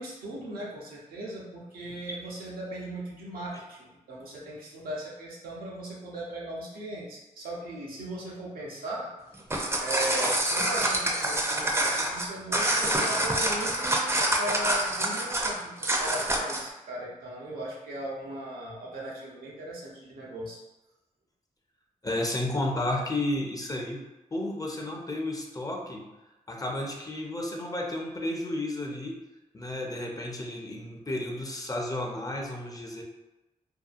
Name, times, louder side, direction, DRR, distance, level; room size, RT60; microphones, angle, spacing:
voice 1, 0.0-9.1 9.8-20.6, right 1 dB, 85° right, -4 dB, 0.7 m, -38 dB
sound 1, 9.3-16.7, right 1 dB, 20° right, 0.5 m, -26 dB
voice 2, 22.0-24.0 24.3-26.1 26.5-29.2 29.5-33.0, left 1 dB, 25° left, 0 dB, 0.6 m, -32 dB
2.7 x 2.2 x 2.4 m, 1.0 s
supercardioid pair, 45°, 15 cm